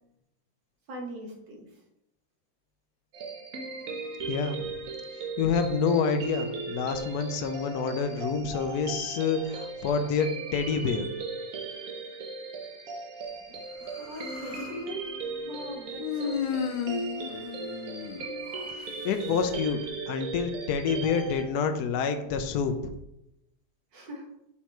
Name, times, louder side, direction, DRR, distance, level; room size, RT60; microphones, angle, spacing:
voice 1, 0.9-1.7 13.9-15.0 15.4-16.8 23.9-24.3, equal, 80° right, 0 dB, 2.0 m, -40 dB
sound 1, 3.1-21.4, right 4 dB, 55° right, 1.3 m, -37 dB
voice 2, 4.2-4.7 5.4-11.1 18.7-19.8 20.1-22.7, left 5 dB, 65° left, 7 dB, 1.1 m, -28 dB
Human voice, 13.9-14.8 16.0-18.7, left 8 dB, 85° left, 1.3 m, -34 dB
5.7 x 4.5 x 4.5 m, 0.83 s
omnidirectional pair, 2.0 m